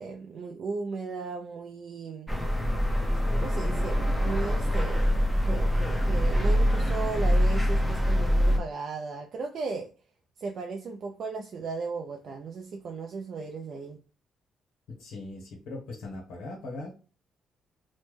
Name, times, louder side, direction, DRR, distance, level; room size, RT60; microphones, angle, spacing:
voice 1, 0.0-2.3 3.4-9.9 10.4-14.0, right 4 dB, 60° right, 0.4 m, -36 dB
sound 1, 2.3-8.6, equal, ahead, 0.7 m, -24 dB
voice 2, 14.9-16.9, left 2 dB, 80° left, 0.9 m, -40 dB
3.1 x 2.2 x 3.2 m
cardioid pair, 90°, 0 cm